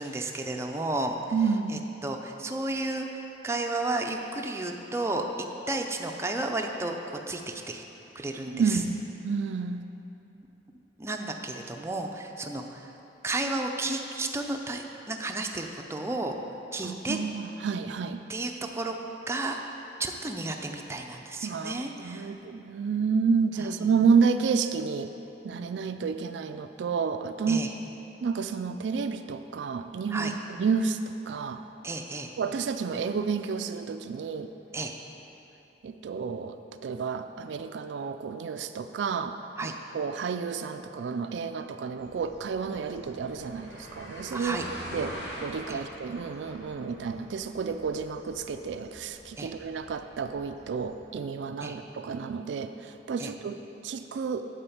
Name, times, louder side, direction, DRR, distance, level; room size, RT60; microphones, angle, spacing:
voice 1, 0.0-1.1 1.7-5.2 5.7-7.8 8.1-8.8 11.0-12.9 13.2-16.3 16.7-17.2 18.3-19.0 19.3-19.6 20.0-22.3 23.6-23.9 27.5-27.7 30.1-30.3 31.8-32.3 34.7-34.9 39.6-39.7 44.3-44.7 45.7-45.8 49.4-49.5 51.6-51.8 53.2-53.3, right 2 dB, 15° right, 2 dB, 0.5 m, -32 dB
voice 2, 1.3-1.8 8.5-9.9 16.8-18.2 21.4-25.1 25.4-27.7 28.2-31.6 32.4-34.5 35.8-39.4 39.6-54.4, right 5 dB, 80° right, 8 dB, 0.4 m, -30 dB
sound 1, 42.0-51.0, equal, 90° left, 1.7 m, -45 dB
8.8 x 4.3 x 7.1 m, 3.0 s
head